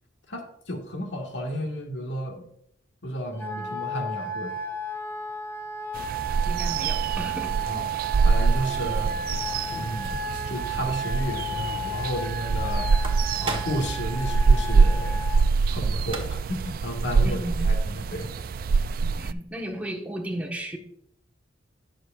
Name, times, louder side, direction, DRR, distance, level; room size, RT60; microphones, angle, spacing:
voice 1, 0.3-2.5 3.0-4.6 7.6-9.2 9.7-10.1 10.5-15.2 15.7-18.3, equal, 70° left, 1 dB, 1.9 m, -33 dB
Wind instrument woodwind instrument, 3.4-15.4, right 2 dB, 15° left, 2.1 m, -33 dB
sound 1, 5.9-19.3, right 4 dB, 50° right, 0.3 m, -25 dB
voice 2, 6.4-7.6 17.2-17.7 19.0-20.8, right 1 dB, 10° right, 0 dB, 1.4 m, -34 dB
sound 2, 9.2-10.6 10.9-11.0 11.3-11.4 12.8-13.9 15.7-15.8 16.0-16.6, right 2 dB, 30° right, 1.4 m, -36 dB
17.5 x 6.4 x 2.5 m, 0.70 s
head